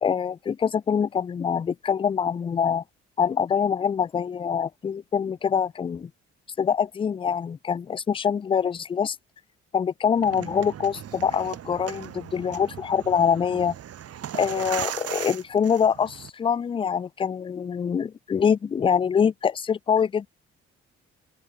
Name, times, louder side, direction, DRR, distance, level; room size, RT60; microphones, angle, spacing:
voice 1, 0.0-2.8 3.2-6.1 6.6-9.2 9.7-13.7 14.3-20.3, left 7 dB, 15° left, 0.3 m, -24 dB
sound 1, 10.1-16.3, right 10 dB, 40° right, 0.9 m, -37 dB
open air
figure-of-eight pair, 45°, 36 cm